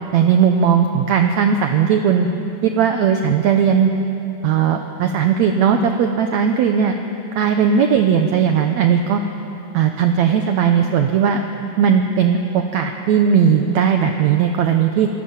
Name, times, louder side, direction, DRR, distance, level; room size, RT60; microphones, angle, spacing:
voice 1, 0.1-2.3 2.6-3.9 4.4-7.0 7.4-9.2 9.7-11.4 11.8-15.1, right 7 dB, 70° right, 5 dB, 1.8 m, -17 dB
27.0 x 17.5 x 7.3 m, 2.8 s
omnidirectional pair, 4.0 m